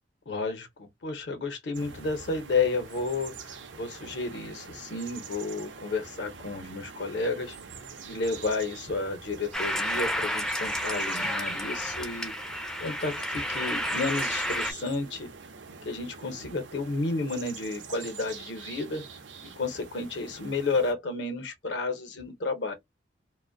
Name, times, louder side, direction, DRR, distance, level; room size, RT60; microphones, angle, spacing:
voice 1, 0.3-7.6 8.0-12.3 12.8-15.3 15.8-19.0 19.4-22.7, left 3 dB, 65° left, 0.7 m, -31 dB
sound 1, 1.7-20.9, right 5 dB, 70° right, 0.5 m, -45 dB
sound 2, 9.5-14.7, equal, 5° left, 0.3 m, -31 dB
2.4 x 2.1 x 2.5 m
head